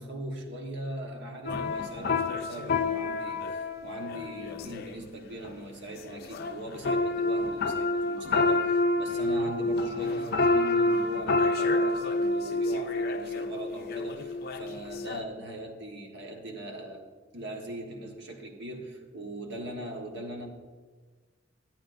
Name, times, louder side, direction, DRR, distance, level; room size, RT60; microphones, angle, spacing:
voice 1, 0.0-17.0 17.3-20.5, right 1 dB, 65° right, 1 dB, 1.3 m, -40 dB
sound 1, 1.4-5.0 5.4-5.6 6.0-15.2, left 2 dB, 55° left, 0.4 m, -28 dB
13.5 x 8.9 x 2.6 m, 1.4 s
head